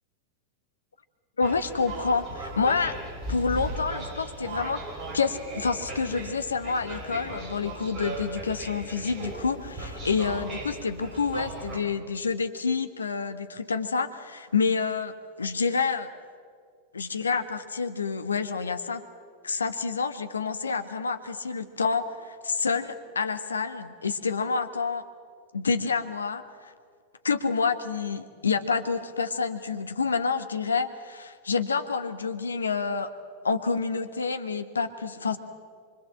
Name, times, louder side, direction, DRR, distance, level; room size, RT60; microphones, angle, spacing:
voice 1, 1.4-3.0 3.3-4.8 5.1-16.1 16.9-19.0 19.4-25.0 25.5-26.7 27.2-33.1 33.4-35.4, left 5 dB, 75° left, 10 dB, 1.4 m, -28 dB
sound 1, 1.4-11.8, right 1 dB, 30° right, 6.0 m, -37 dB
25.5 x 25.0 x 7.6 m, 2.1 s
figure-of-eight pair, 90°, 0 cm